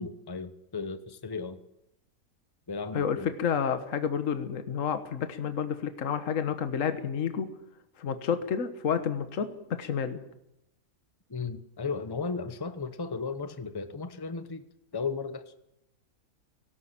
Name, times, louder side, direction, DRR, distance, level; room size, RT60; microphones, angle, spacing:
voice 1, 0.0-1.6 2.7-3.3 11.3-14.6 14.9-15.5, left 4 dB, 20° left, 12 dB, 0.9 m, -35 dB
voice 2, 2.9-7.5 8.0-10.2, left 7 dB, 65° left, 10 dB, 1.6 m, -30 dB
18.0 x 17.5 x 8.8 m, 0.83 s
omnidirectional pair, 1.5 m